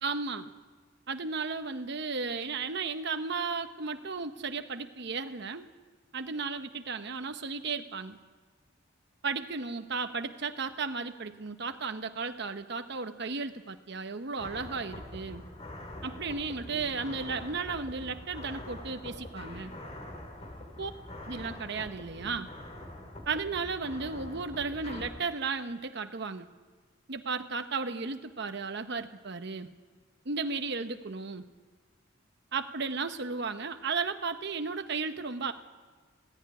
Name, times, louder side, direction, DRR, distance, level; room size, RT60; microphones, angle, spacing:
voice 1, 0.0-0.5 1.1-5.7 6.1-8.2 9.2-15.4 16.0-19.7 20.8-20.9 21.3-22.5 23.3-26.5 27.1-29.7 30.2-31.5 32.5-35.5, right 4 dB, 60° right, 7 dB, 1.0 m, -34 dB
sound 1, 14.4-25.1, left 1 dB, 35° left, 3.2 m, -44 dB
19.0 x 14.5 x 9.6 m, 1.4 s
head